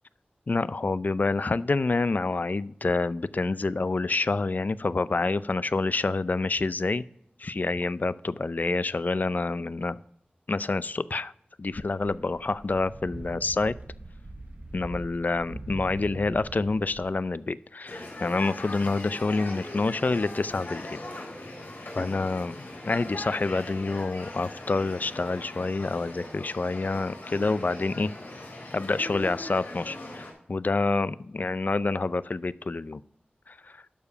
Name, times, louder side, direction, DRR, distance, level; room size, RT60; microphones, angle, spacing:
voice 1, 0.5-7.0 7.4-10.0 10.5-11.3 11.6-13.7 14.7-21.0 21.9-28.1 28.7-33.0 33.5-33.8, left 3 dB, 55° left, 17 dB, 0.4 m, -27 dB
sound 1, 11.7-17.1, right 2 dB, 50° right, 1.0 m, -42 dB
sound 2, 17.8-30.3, left 2 dB, 85° left, 3.3 m, -40 dB
12.0 x 4.9 x 5.6 m, 0.72 s
cardioid pair, 45°, 3 cm